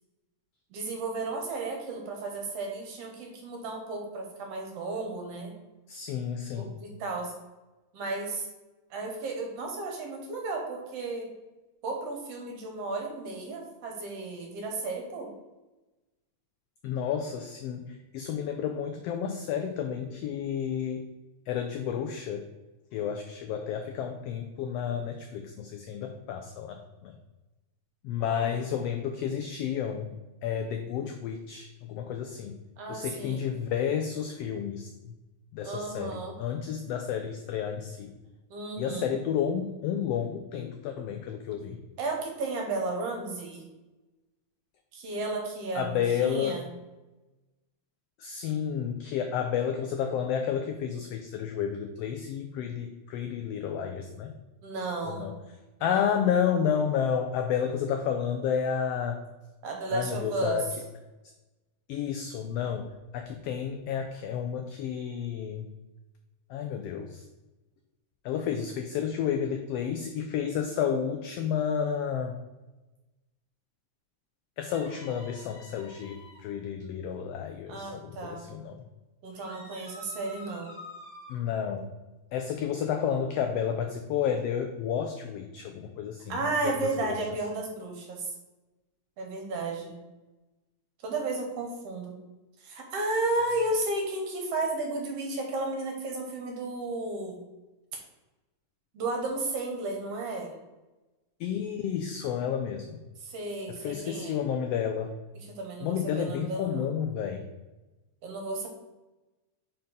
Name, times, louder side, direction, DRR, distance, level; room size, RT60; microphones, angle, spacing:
voice 1, 0.7-5.5 6.6-7.3 7.9-8.5 8.9-11.3 11.8-15.3 28.2-28.5 32.8-33.5 35.6-36.4 38.5-39.1 42.0-43.7 44.9-46.6 54.6-55.3 55.8-56.2 59.6-60.6 77.7-78.5 79.2-80.7 86.3-88.3 89.2-90.0 91.0-92.2 92.6-97.4 98.9-100.5 103.2-104.4 105.4-106.9 108.2-108.7, right 2 dB, 65° right, 2 dB, 1.9 m, -33 dB
voice 2, 5.9-6.7 16.8-21.1 21.5-22.4 22.9-27.2 28.0-32.5 32.9-35.2 35.5-38.2 38.8-41.8 45.7-46.6 48.2-54.3 55.0-55.3 55.8-59.2 59.9-60.7 61.9-65.7 66.5-67.2 68.2-72.4 74.6-78.8 81.3-81.9 82.3-87.2 101.4-103.0 103.7-105.1 105.8-107.5, left 8 dB, 90° left, 5 dB, 1.3 m, -31 dB
sound 1, 74.6-76.4 79.3-81.4, left 1 dB, 20° right, 1.4 m, -48 dB
5.1 x 4.4 x 5.2 m, 1.1 s
omnidirectional pair, 3.3 m